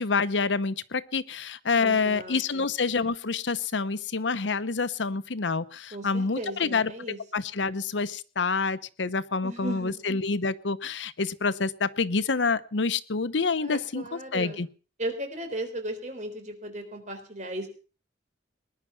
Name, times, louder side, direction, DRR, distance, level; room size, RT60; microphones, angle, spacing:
voice 1, 0.0-14.7, left 4 dB, 90° left, 15 dB, 0.9 m, -27 dB
voice 2, 1.8-2.7 5.9-7.2 9.4-10.0 13.6-14.6 15.0-17.7, right 1 dB, 40° right, 6 dB, 3.8 m, -36 dB
20.0 x 10.5 x 5.8 m, 0.38 s
head